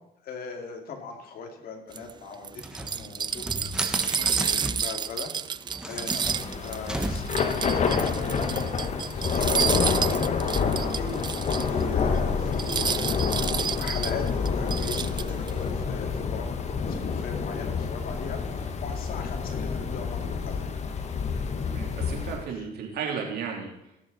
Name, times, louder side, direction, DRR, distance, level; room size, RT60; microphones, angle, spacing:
voice 1, 0.2-3.7 4.1-5.3 5.9-20.7 22.6-22.7, left 5 dB, 60° left, 3 dB, 2.4 m, -40 dB
sound 1, 1.9-11.8 12.1-12.2 12.5-15.5, right 7 dB, 25° right, 0.4 m, -30 dB
sound 2, 2.6-5.0 5.6-7.6, right 1 dB, 5° right, 1.2 m, -34 dB
Thunder / Rain, 6.2-22.5, left 5 dB, 40° left, 1.2 m, -28 dB
voice 2, 21.7-23.7, right 6 dB, 70° right, 0 dB, 3.1 m, -34 dB
17.0 x 7.3 x 4.1 m, 0.87 s
cardioid pair, 110°, 17 cm